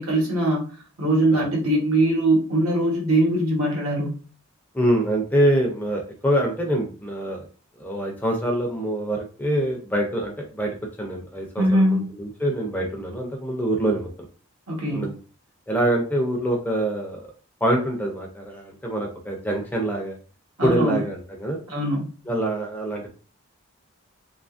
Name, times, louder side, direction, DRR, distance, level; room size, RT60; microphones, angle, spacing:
voice 1, 0.0-4.2 11.6-12.0 14.7-15.1 20.6-21.0 21.7-22.1, right 1 dB, 75° right, -2 dB, 1.1 m, -22 dB
voice 2, 4.7-7.5 7.8-14.1 14.9-15.2 15.7-17.3 17.6-20.2 20.6-21.6 22.3-23.2, right 1 dB, 10° left, 1 dB, 0.4 m, -25 dB
2.8 x 2.4 x 2.4 m, 0.39 s
head